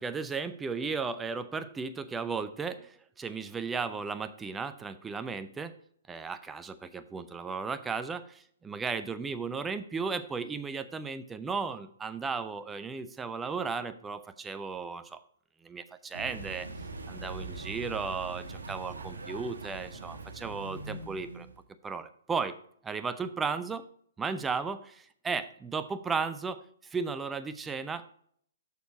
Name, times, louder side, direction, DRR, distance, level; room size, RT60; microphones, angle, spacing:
voice 1, 0.0-5.7 6.1-15.2 15.6-16.7 17.1-21.5 21.8-22.6 22.8-23.8 24.2-28.1, right 5 dB, 10° right, 11 dB, 0.6 m, -35 dB
sound 1, 16.1-21.6, right 3 dB, 75° right, 1.2 m, -42 dB
6.9 x 6.5 x 4.6 m, 0.62 s
figure-of-eight pair, 120°, 0 cm